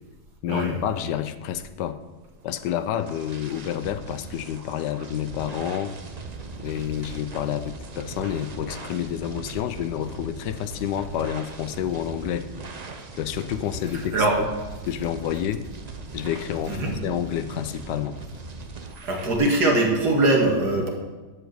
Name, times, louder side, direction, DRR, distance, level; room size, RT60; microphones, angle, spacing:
voice 1, 0.4-2.0 2.4-5.9 6.6-12.5 13.1-14.5 14.8-15.7 16.1-18.2, left 10 dB, 85° left, 12 dB, 1.3 m, -29 dB
sound 1, 2.4-19.4, right 3 dB, 45° right, 0.5 m, -39 dB
voice 2, 19.0-20.9, right 2 dB, 75° right, 0 dB, 2.5 m, -21 dB
11.5 x 5.0 x 8.0 m, 1.2 s
omnidirectional pair, 1.8 m